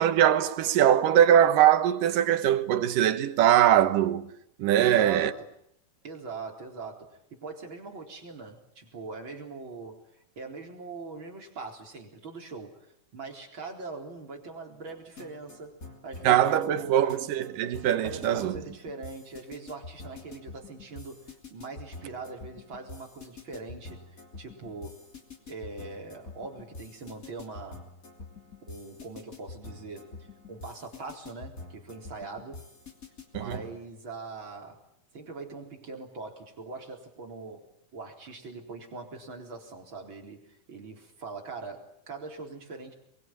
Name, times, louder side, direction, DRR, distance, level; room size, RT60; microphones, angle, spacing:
voice 1, 0.0-4.3 4.6-5.3 16.2-18.6 33.3-33.6, right 11 dB, 85° right, 2.9 m, -22 dB
voice 2, 4.8-5.5 6.0-12.8 13.1-15.8 16.0-17.2 18.0-25.0 25.5-27.9 28.7-30.1 30.5-32.6 33.4-34.8 35.1-37.7 37.9-42.9, right 4 dB, 35° right, 4.6 m, -42 dB
sound 1, 14.9-33.8, left 3 dB, 25° left, 3.1 m, -47 dB
25.0 x 23.0 x 9.0 m
omnidirectional pair, 3.7 m